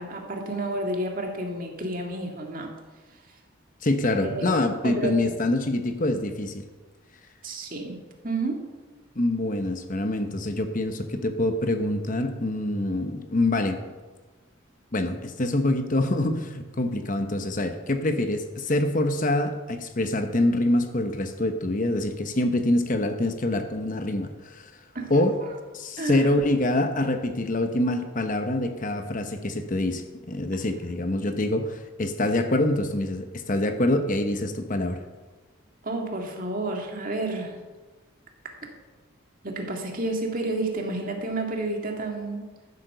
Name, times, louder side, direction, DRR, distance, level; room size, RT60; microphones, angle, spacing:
voice 1, 0.0-2.7 4.2-4.5 4.8-5.4 7.4-8.0 8.2-8.6 24.9-25.5 26.0-26.3 35.8-37.6 39.4-42.4, right 2 dB, 40° right, 2 dB, 2.1 m, -30 dB
voice 2, 3.8-6.6 9.2-13.8 14.9-24.7 25.1-25.3 25.7-35.0, left 1 dB, 40° left, 7 dB, 0.9 m, -25 dB
13.5 x 8.2 x 6.7 m, 1.3 s
head